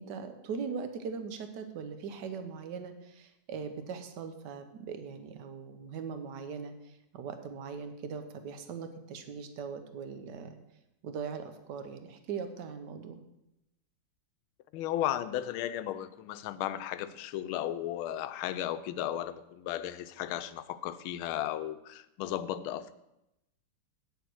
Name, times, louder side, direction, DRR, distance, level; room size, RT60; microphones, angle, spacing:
voice 1, 0.0-6.7 7.1-10.6 11.0-13.2, right 6 dB, 60° right, 8 dB, 1.5 m, -40 dB
voice 2, 14.7-22.9, left 12 dB, 85° left, 13 dB, 1.4 m, -35 dB
9.4 x 7.0 x 6.2 m, 0.87 s
omnidirectional pair, 2.2 m